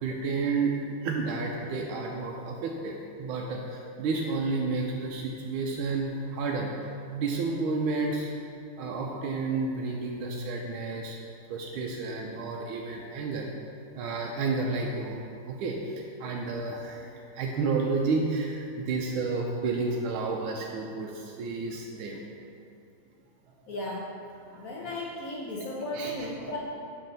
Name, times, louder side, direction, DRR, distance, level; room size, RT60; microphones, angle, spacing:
voice 1, 0.0-6.7 7.1-8.3 8.8-11.2 11.5-13.5 14.0-15.2 15.4-22.2 24.5-24.7 25.6-25.7 25.9-26.3, right 3 dB, 80° right, -1 dB, 1.3 m, -31 dB
voice 2, 23.7-24.1 24.5-26.6, left 1 dB, 70° left, -4 dB, 0.8 m, -35 dB
7.3 x 4.3 x 3.9 m, 2.5 s
omnidirectional pair, 2.3 m